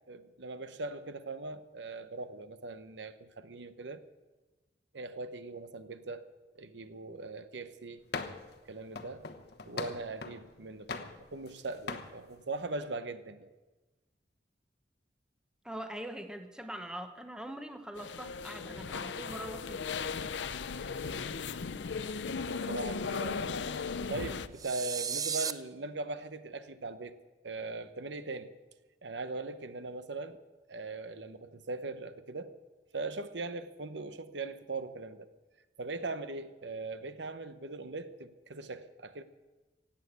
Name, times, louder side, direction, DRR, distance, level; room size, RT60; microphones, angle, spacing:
voice 1, 0.1-4.0 4.9-6.3 6.5-8.0 8.7-9.2 9.6-13.5 22.5-23.6 24.1-27.1 27.4-28.5 29.0-30.4 30.7-32.5 32.9-35.3 35.8-39.2, right 3 dB, 80° right, 11 dB, 0.9 m, -40 dB
sound 1, 8.1-8.5 9.0-10.4 10.9-11.6 11.9-12.1, left 4 dB, 65° left, 1.1 m, -40 dB
voice 2, 15.6-19.8, right 1 dB, 5° right, 7 dB, 0.9 m, -42 dB
sound 2, 18.0-24.5, left 5 dB, 90° left, 0.6 m, -37 dB
sound 3, 24.6-25.5, right 7 dB, 20° right, 0.4 m, -34 dB
17.0 x 8.4 x 8.2 m, 1.2 s
head